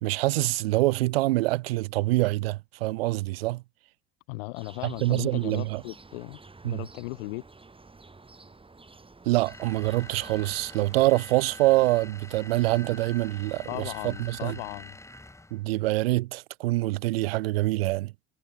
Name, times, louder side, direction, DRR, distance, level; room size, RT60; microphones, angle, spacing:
voice 1, 0.0-3.6 4.8-5.8 6.6-6.8 9.2-14.6 15.5-18.1, right 19 dB, 80° right, 0.5 m, -25 dB
voice 2, 4.3-6.4 6.6-7.4 13.7-15.0, left 24 dB, 75° left, 0.6 m, -37 dB
sound 1, 4.6-11.1, right 3 dB, 20° right, 5.4 m, -51 dB
sound 2, 9.5-15.6, left 2 dB, 10° left, 2.7 m, -45 dB
hypercardioid pair, 65°, 29 cm